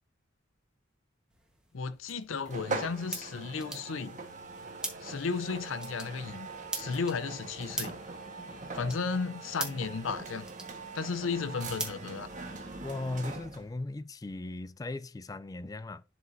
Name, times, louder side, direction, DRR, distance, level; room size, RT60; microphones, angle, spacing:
sound 1, 1.3-12.8, right 2 dB, 5° right, 1.2 m, -44 dB
voice 1, 1.7-4.2 5.0-8.0 8.7-10.5 10.9-12.3, left 5 dB, 85° left, 0.6 m, -34 dB
sound 2, 2.4-13.7, right 3 dB, 40° right, 1.4 m, -42 dB
voice 2, 12.8-16.0, left 2 dB, 20° left, 0.3 m, -37 dB
11.0 x 5.0 x 2.6 m
head